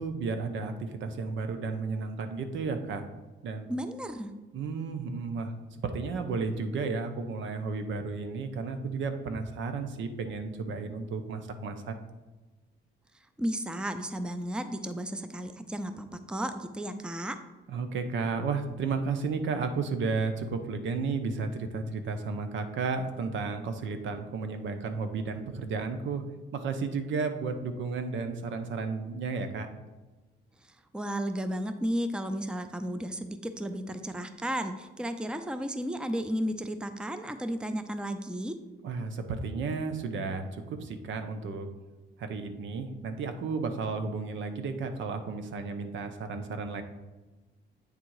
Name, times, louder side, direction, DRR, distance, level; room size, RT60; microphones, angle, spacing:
voice 1, 0.0-3.1 3.4-3.7 4.5-5.5 5.8-11.9 17.7-26.2 26.5-29.7 38.8-41.7 42.2-46.8, right 4 dB, 75° right, 8 dB, 0.8 m, -33 dB
voice 2, 3.7-4.3 13.4-17.4 30.6-38.6, equal, 5° right, 9 dB, 0.5 m, -33 dB
8.4 x 3.7 x 4.7 m, 1.2 s
cardioid pair, 90°, 20 cm